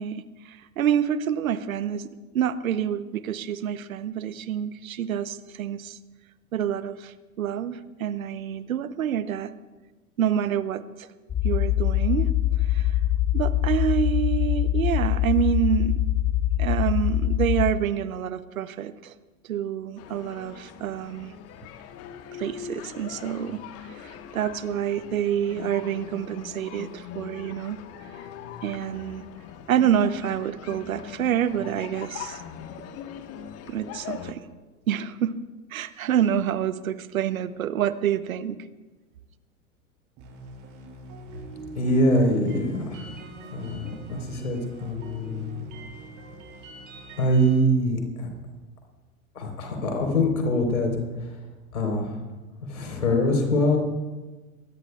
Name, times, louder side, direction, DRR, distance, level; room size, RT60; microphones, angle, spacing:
voice 1, 0.0-6.0 6.5-9.5 10.2-11.1 11.4-12.3 12.6-12.9 13.3-16.0 16.6-19.1 19.5-21.3 22.4-23.6 24.0-27.8 28.6-29.2 29.7-32.4 33.7-34.5 34.9-35.3 35.7-38.6, right 9 dB, 75° right, 14 dB, 0.9 m, -27 dB
sound 1, 11.3-17.7, left 13 dB, 20° left, 0.7 m, -23 dB
sound 2, 20.0-34.3, left 8 dB, 35° left, 1.3 m, -41 dB
sound 3, 40.2-47.6, right 2 dB, 45° right, 5.6 m, -43 dB
voice 2, 41.8-43.1 43.5-45.7 47.2-48.3 49.4-50.9 51.7-52.1 52.6-53.8, equal, 80° left, 3 dB, 4.0 m, -24 dB
23.0 x 18.0 x 2.3 m, 1.2 s
figure-of-eight pair, 90°, 42 cm